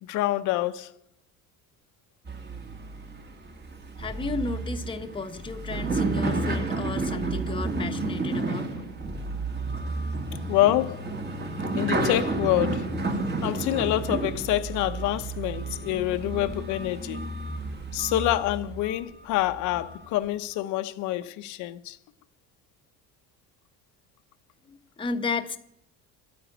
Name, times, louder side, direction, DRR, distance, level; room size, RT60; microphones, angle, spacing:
voice 1, 0.0-0.9 10.5-11.0 11.7-12.9 13.4-17.3 17.9-22.0, left 14 dB, 65° left, 0.9 m, -26 dB
sound 1, 2.3-19.0 19.5-20.0, right 3 dB, 30° right, 2.0 m, -31 dB
voice 2, 4.0-8.7 24.7-25.6, left 4 dB, 15° left, 1.1 m, -33 dB
11.5 x 9.4 x 9.1 m
cardioid pair, 130°, 32 cm